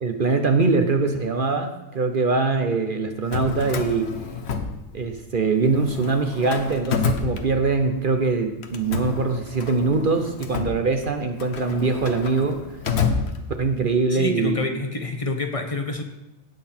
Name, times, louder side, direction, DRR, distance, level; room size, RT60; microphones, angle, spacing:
voice 1, 0.0-4.2 4.9-12.6 13.6-14.6, right 4 dB, 45° right, 5 dB, 0.9 m, -23 dB
Drawer open or close, 3.1-5.3 5.6-8.0 8.6-13.9, left 5 dB, 55° left, 1.1 m, -29 dB
voice 2, 14.1-16.0, left 2 dB, 30° left, 5 dB, 1.0 m, -27 dB
17.0 x 6.1 x 4.3 m, 0.98 s
omnidirectional pair, 1.3 m